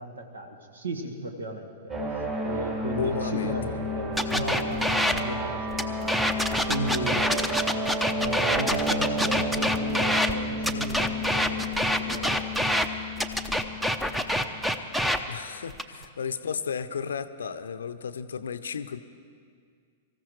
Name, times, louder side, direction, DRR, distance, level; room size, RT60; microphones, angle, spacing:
voice 1, 0.0-2.0 2.4-6.3 6.7-7.2 8.1-12.9, right 2 dB, 75° right, 5 dB, 1.6 m, -35 dB
sound 1, 1.9-15.0, left 1 dB, 30° right, 3.7 m, -32 dB
voice 2, 3.0-3.6 7.1-7.4 15.2-19.0, left 6 dB, 70° left, 12 dB, 0.6 m, -33 dB
sound 2, 4.2-5.2 5.7-10.3 10.6-12.9 13.2-15.2 15.7-16.0, equal, 5° right, 0.7 m, -26 dB
25.0 x 14.5 x 3.2 m, 2.1 s
figure-of-eight pair, 100°, 0 cm